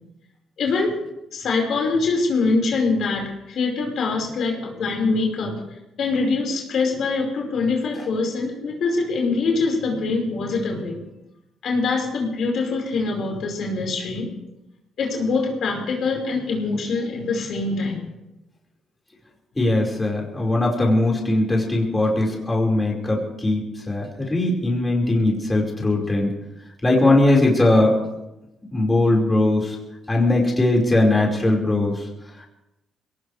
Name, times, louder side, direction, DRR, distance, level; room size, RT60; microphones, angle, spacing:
voice 1, 0.6-1.0 1.3-5.6 6.0-11.0 11.6-14.3 15.0-18.0, left 3 dB, 65° left, 0 dB, 5.0 m, -24 dB
voice 2, 19.6-23.6 23.9-26.3 26.8-28.1 28.7-29.7 30.1-31.9, left 2 dB, 15° left, -2 dB, 5.0 m, -20 dB
22.0 x 18.5 x 3.4 m, 0.94 s
cardioid pair, 90°, 0 cm